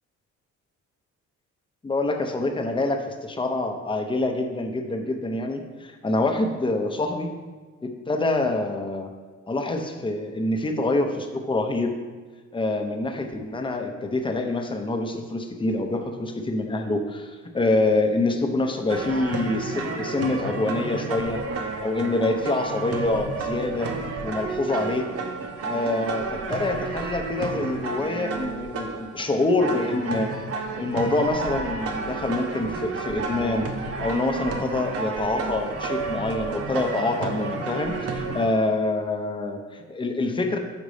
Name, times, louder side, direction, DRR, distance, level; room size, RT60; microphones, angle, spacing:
voice 1, 1.8-7.3 7.8-9.1 9.5-11.9 12.5-21.4 21.8-23.9 24.2-25.1 25.6-30.3 30.8-33.7 34.0-40.6, left 2 dB, 15° left, 4 dB, 0.7 m, -26 dB
sound 1, 18.9-38.5, right 4 dB, 50° right, 0.8 m, -31 dB
5.1 x 4.0 x 4.9 m, 1.4 s
cardioid pair, 90°, 30 cm